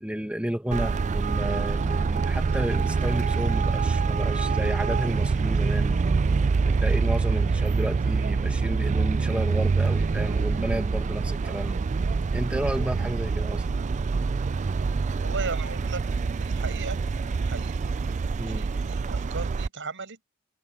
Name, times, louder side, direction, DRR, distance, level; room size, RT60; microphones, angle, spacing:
voice 1, 0.0-6.0 6.6-11.8 12.3-13.7 18.4-18.6, equal, 5° right, 1.8 m, -32 dB
Traffic noise roadway noise, 0.7-19.7, right 4 dB, 35° right, 0.4 m, -25 dB
voice 2, 15.2-16.0 16.4-17.0 17.3-17.8 18.4-20.3, right 4 dB, 60° right, 6.7 m, -36 dB
head